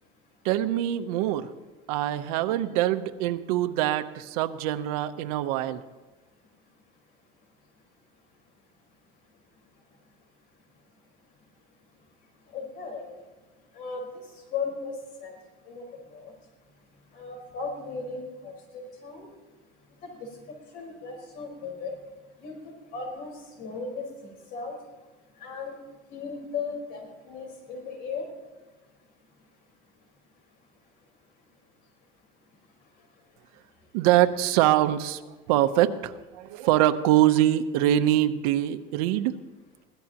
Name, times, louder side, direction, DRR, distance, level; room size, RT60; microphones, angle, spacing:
voice 1, 0.4-1.5 1.9-5.8 33.9-35.2 35.5-39.4, right 13 dB, 85° right, 9 dB, 0.9 m, -24 dB
voice 2, 12.5-13.2 13.7-14.9 15.2-15.3 15.6-16.3 17.1-19.3 20.0-20.3 20.7-21.9 22.4-24.7 25.4-25.8 26.1-28.3, left 4 dB, 55° left, 2 dB, 4.6 m, -36 dB
23.0 x 16.5 x 3.0 m, 1.2 s
cardioid pair, 155°, 19 cm